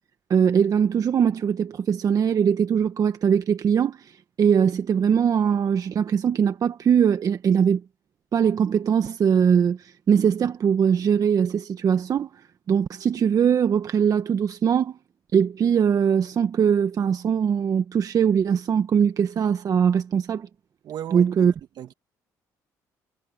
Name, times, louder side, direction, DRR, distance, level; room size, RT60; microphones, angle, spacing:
voice 1, 0.3-7.8 8.3-15.0 15.3-20.5 21.1-21.5, right 7 dB, 50° right, 1.3 m, -21 dB
voice 2, 20.8-21.5 21.8-21.9, right 11 dB, 65° right, 2.1 m, -36 dB
supercardioid pair, 80°, 8 cm